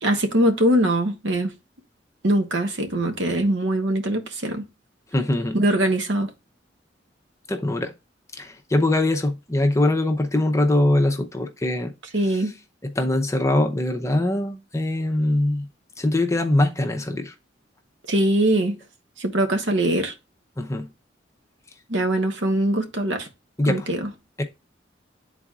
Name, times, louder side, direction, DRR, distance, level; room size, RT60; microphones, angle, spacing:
voice 1, 0.0-1.5 2.2-4.7 5.5-6.3 12.1-12.5 18.1-18.8 19.2-20.1 21.9-23.3 23.6-24.1, right 1 dB, 90° right, 1.2 m, -22 dB
voice 2, 5.1-5.6 7.5-7.9 8.4-11.9 12.8-15.7 16.0-17.3 20.6-20.9 23.6-23.8 24.4-24.5, left 1 dB, 15° left, 0.7 m, -22 dB
11.5 x 4.0 x 2.4 m
head